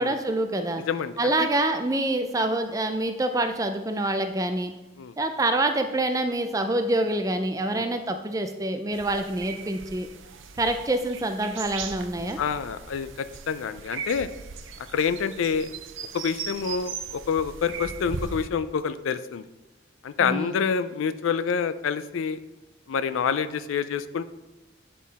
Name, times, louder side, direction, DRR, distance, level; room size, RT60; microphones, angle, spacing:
voice 1, 0.0-0.8 1.2-4.7 5.2-10.1 10.6-12.4 20.2-20.6, right 1 dB, 15° right, 7 dB, 0.4 m, -26 dB
voice 2, 0.9-1.5 5.0-5.1 7.7-7.9 12.4-14.3 14.9-15.7 16.1-19.5 20.0-22.4 22.9-24.2, left 6 dB, 80° left, 13 dB, 0.4 m, -27 dB
sound 1, 8.9-18.5, right 6 dB, 75° right, 0.5 m, -38 dB
8.5 x 3.8 x 4.1 m, 1.0 s
head